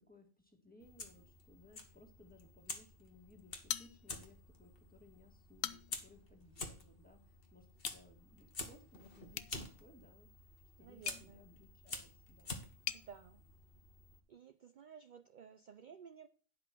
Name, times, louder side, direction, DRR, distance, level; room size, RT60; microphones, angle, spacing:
voice 1, 0.0-10.3 10.8-12.6, left 2 dB, 5° left, 3 dB, 2.1 m, -63 dB
Fire, 0.8-14.2, left 3 dB, 45° left, 1.6 m, -50 dB
sound 1, 3.7-4.4 4.8-4.9 5.4-6.1 7.8-8.0 9.3-13.1, left 10 dB, 65° left, 0.9 m, -45 dB
voice 2, 10.8-11.5 12.9-13.5 14.3-16.3, right 7 dB, 50° right, 10 dB, 0.6 m, -55 dB
10.5 x 5.8 x 6.0 m, 0.38 s
omnidirectional pair, 1.3 m